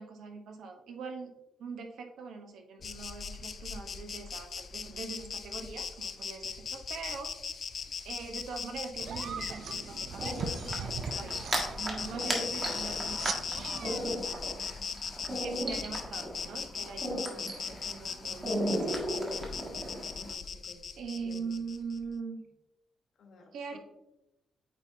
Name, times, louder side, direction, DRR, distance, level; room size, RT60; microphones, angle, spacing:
voice 1, 0.0-1.3 1.6-7.3 8.0-11.4 11.8-13.5 15.4-18.9 21.0-22.5 23.5-23.8, right 5 dB, 75° right, 5 dB, 1.0 m, -42 dB
Insect, 2.8-22.0, left 6 dB, 45° left, 0.4 m, -39 dB
sound 1, 9.0-14.2, right 6 dB, 55° right, 0.4 m, -40 dB
sound 2, 10.1-20.3, right 1 dB, 25° right, 1.5 m, -36 dB
voice 2, 15.0-15.5 16.0-16.6 20.2-20.8 21.2-21.5 23.2-23.8, left 3 dB, 65° left, 3 dB, 1.3 m, -55 dB
8.6 x 4.2 x 2.8 m, 0.91 s
cardioid pair, 140°, 0 cm